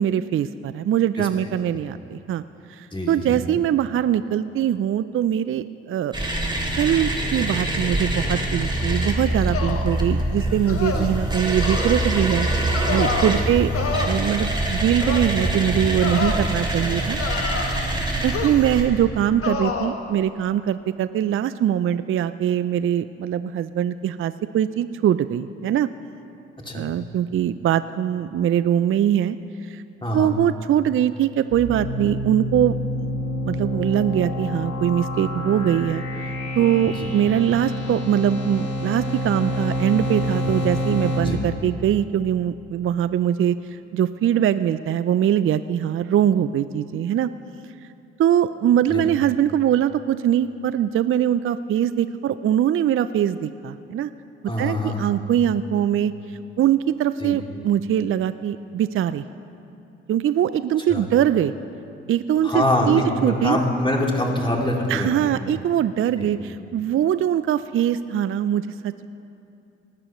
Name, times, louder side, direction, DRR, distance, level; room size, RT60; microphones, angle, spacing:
voice 1, 0.0-2.4 2.7-6.1 6.8-13.7 14.1-17.2 17.9-25.9 26.7-29.4 29.6-29.8 30.1-33.1 33.4-36.0 36.6-43.6 43.9-47.3 48.2-54.1 54.6-59.2 60.1-61.5 62.1-63.6 64.9-69.1, right 10 dB, 45° right, 14 dB, 0.4 m, -22 dB
voice 2, 2.9-3.3 10.9-11.1 13.3-13.5 16.3-16.5 26.6-26.8 30.0-30.3 36.8-37.1 41.2-41.4 48.9-49.0 54.5-55.2 57.2-57.3 60.9-61.0 62.4-65.1 66.2-66.3, left 1 dB, 15° left, -1 dB, 2.6 m, -25 dB
sound 1, 6.1-18.8, right 1 dB, 15° right, 3.1 m, -24 dB
sound 2, 9.5-10.0 10.7-11.1 11.6-11.9 12.7-13.4 13.7-14.1 15.0-15.3 16.0-16.4 17.2-17.9 18.3-18.7 19.4-19.9, left 4 dB, 50° left, 1.3 m, -28 dB
sound 3, 31.5-41.2, equal, 85° left, 2.4 m, -28 dB
19.0 x 13.5 x 3.1 m, 2.7 s
hypercardioid pair, 50°, 29 cm